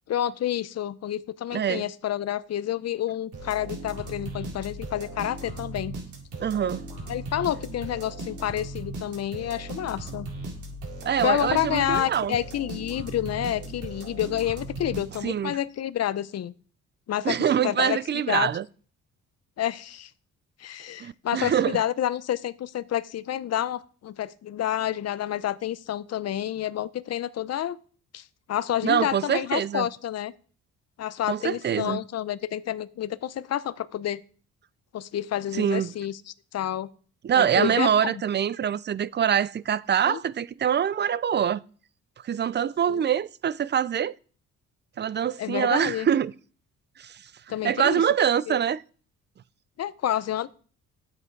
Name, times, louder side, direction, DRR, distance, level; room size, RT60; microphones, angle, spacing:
voice 1, 0.1-5.9 7.1-10.3 11.2-16.5 17.1-17.4 17.6-18.0 18.3-18.5 19.6-20.1 20.6-27.8 28.1-30.3 31.0-34.2 34.9-36.2 36.5-36.9 37.4-38.1 40.0-40.2 42.9-43.0 45.4-46.1 47.5-48.0 48.5-48.6 49.8-50.5, left 11 dB, 55° left, 0.7 m, -29 dB
voice 2, 1.5-1.9 6.4-6.8 11.0-12.4 15.2-15.6 17.2-18.6 21.0-21.8 28.8-29.9 31.3-32.0 35.5-35.9 37.2-41.6 42.2-44.2 45.0-46.3 47.0-47.2 47.6-48.8, right 9 dB, 35° right, 0.5 m, -24 dB
sound 1, 3.3-15.5, right 2 dB, 75° right, 4.2 m, -37 dB
10.5 x 7.8 x 4.6 m
cardioid pair, 90°, 30 cm